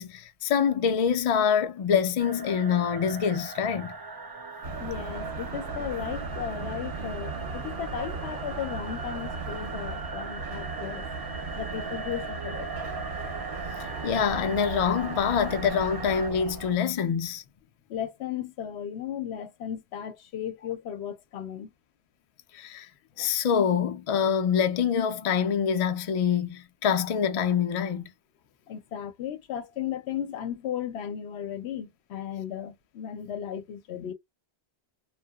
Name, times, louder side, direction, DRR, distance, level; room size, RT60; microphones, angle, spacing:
voice 1, 0.0-3.9 14.0-17.4 22.5-22.9 23.2-28.0, left 7 dB, 50° left, 0.4 m, -25 dB
sound 1, 2.2-16.3, right 3 dB, 35° right, 0.3 m, -40 dB
metro goes, 4.6-16.8, right 4 dB, 60° right, 0.8 m, -37 dB
voice 2, 4.8-11.1 11.5-12.7 17.9-21.7 28.7-34.1, left 9 dB, 80° left, 0.8 m, -35 dB
2.7 x 2.2 x 2.2 m
omnidirectional pair, 1.1 m